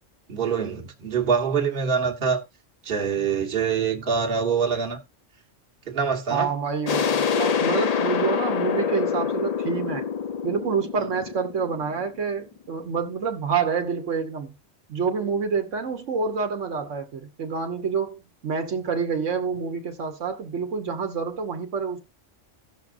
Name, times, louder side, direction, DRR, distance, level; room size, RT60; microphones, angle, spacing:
voice 1, 0.3-2.4 2.8-5.0 5.9-6.5, right 6 dB, 50° right, 1.4 m, -24 dB
voice 2, 6.3-10.1 10.4-14.5 14.9-22.0, right 5 dB, 80° right, 1.4 m, -27 dB
sound 1, 6.9-12.3, left 7 dB, 50° left, 0.4 m, -26 dB
17.5 x 6.1 x 2.5 m
omnidirectional pair, 1.3 m